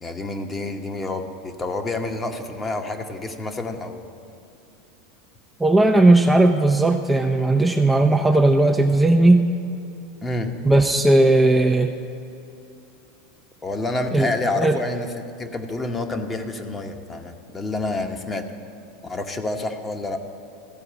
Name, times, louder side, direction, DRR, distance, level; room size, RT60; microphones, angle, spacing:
voice 1, 0.0-4.1 10.2-10.5 13.6-18.4 19.0-20.2, left 2 dB, 20° left, 5 dB, 1.0 m, -28 dB
voice 2, 5.6-9.5 10.7-11.9 14.1-14.3 14.6-14.8, right 2 dB, 10° right, 3 dB, 0.5 m, -16 dB
14.0 x 4.7 x 8.6 m, 2.8 s
hypercardioid pair, 80°, 0 cm